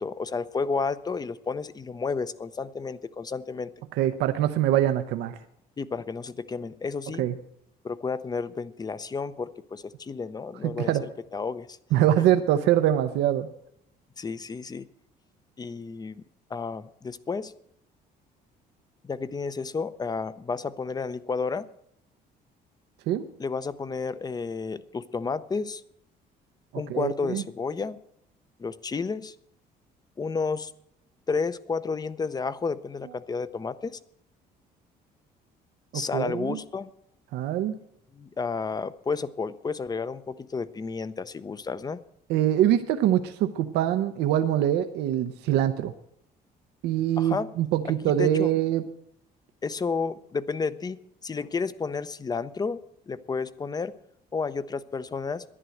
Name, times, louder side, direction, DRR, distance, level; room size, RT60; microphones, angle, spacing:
voice 1, 0.0-3.7 5.8-7.3 7.8-11.8 12.2-12.3 14.2-14.9 15.6-16.2 16.5-17.5 19.0-21.7 23.4-25.8 26.7-28.0 28.6-29.3 30.2-30.7 31.3-34.0 35.9-36.9 38.1-42.0 47.2-47.5 48.0-48.5 49.6-53.9 54.3-55.4, left 4 dB, 25° left, 15 dB, 0.6 m, -31 dB
voice 2, 3.9-5.4 7.2-7.3 10.6-11.0 11.9-13.5 23.1-23.2 26.9-27.4 35.9-36.6 37.3-37.8 42.3-45.9 46.8-48.8, right 11 dB, 85° right, 8 dB, 0.7 m, -24 dB
11.0 x 10.0 x 7.8 m, 0.74 s
cardioid pair, 110°, 17 cm